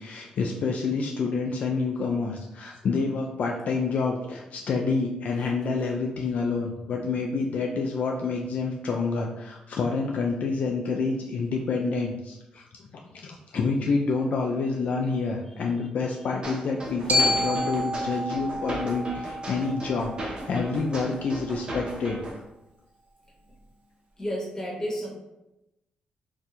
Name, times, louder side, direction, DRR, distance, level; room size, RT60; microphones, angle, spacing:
voice 1, 0.0-22.2, left 4 dB, 65° left, 0 dB, 0.3 m, -28 dB
sound 1, 16.4-22.4, right 1 dB, 40° right, 0.8 m, -37 dB
Glockenspiel, 17.1-21.2, left 1 dB, 65° right, 0.6 m, -29 dB
voice 2, 24.2-25.1, equal, 20° left, -3 dB, 1.2 m, -31 dB
2.7 x 2.3 x 4.0 m, 0.92 s
cardioid pair, 75°, 3 cm